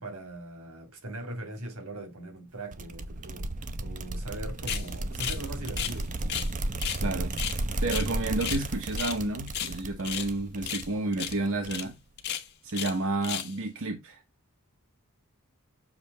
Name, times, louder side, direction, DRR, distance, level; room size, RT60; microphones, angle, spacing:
voice 1, 0.0-3.5 3.8-6.5 7.0-7.3, right 1 dB, 90° right, 2.9 m, -40 dB
sound 1, 2.7-11.9, right 2 dB, 35° right, 0.7 m, -34 dB
sound 2, 4.7-4.9 5.2-5.4 5.7-6.5 6.8-7.0 7.3-8.6 8.9-9.2 9.5-10.3 10.6-10.9 11.1-11.4 11.7-11.8 12.2-13.0 13.2-13.5, left 9 dB, 50° left, 1.1 m, -34 dB
voice 2, 7.0-7.3 7.8-11.9 12.6-14.2, right 2 dB, 65° right, 1.0 m, -30 dB
6.9 x 3.3 x 5.4 m
head